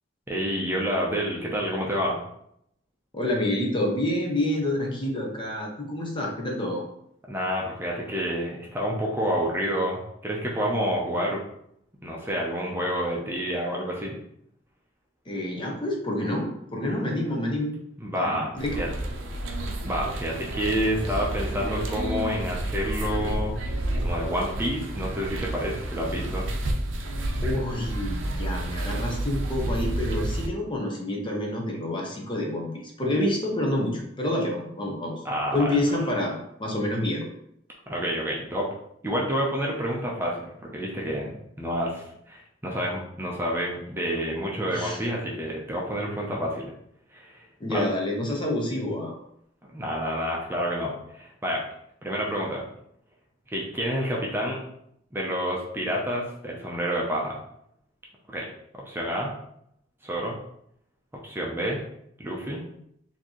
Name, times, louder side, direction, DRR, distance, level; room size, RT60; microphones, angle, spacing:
voice 1, 0.3-2.2 7.3-11.4 12.0-14.2 18.0-18.9 19.8-23.6 24.0-26.5 35.2-35.8 37.9-38.7 39.0-40.4 40.7-46.7 47.1-47.4 47.7-47.8 49.7-51.6 52.0-52.6 53.5-54.6 55.1-57.4 58.3-58.5 58.8-59.3 60.0-60.4 61.2-61.8 62.2-62.7, equal, 10° right, -3 dB, 0.6 m, -29 dB
voice 2, 3.1-6.8 15.3-17.8 18.2-18.8 27.4-35.1 35.5-36.3 36.6-37.3 44.7-45.1 47.6-49.2, left 1 dB, 25° left, 0 dB, 0.7 m, -28 dB
sound 1, 18.6-30.5, right 1 dB, 80° right, 0.6 m, -30 dB
4.2 x 2.7 x 3.0 m, 0.74 s
head